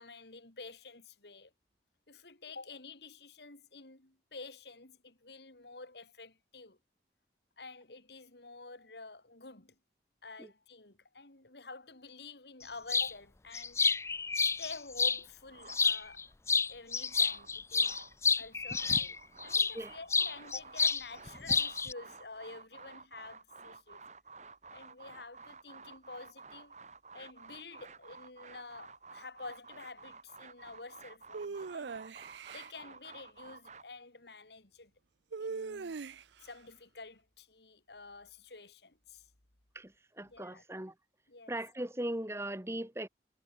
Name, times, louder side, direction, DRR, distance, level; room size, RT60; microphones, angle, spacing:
voice 1, 0.0-1.5 2.1-6.8 7.6-9.7 10.2-13.8 14.3-16.2 16.7-18.0 18.4-24.0 24.7-26.7 27.1-32.0 32.5-34.9 35.4-36.0 36.4-39.3 40.2-40.6 41.3-41.6, left 3 dB, 70° left, 3.1 m, -49 dB
sound 1, 12.9-13.1 13.5-15.2 15.7-16.2 16.5-19.7 20.1-21.0 21.3-21.9, left 5 dB, 15° left, 0.4 m, -29 dB
sound 2, 15.5-16.3 16.8-18.2 18.5-33.8, right 4 dB, 40° right, 2.5 m, -52 dB
sound 3, 31.3-32.7 35.3-36.5, right 4 dB, 90° right, 0.6 m, -41 dB
voice 2, 39.7-40.9 41.5-43.1, right 1 dB, 15° right, 1.4 m, -39 dB
head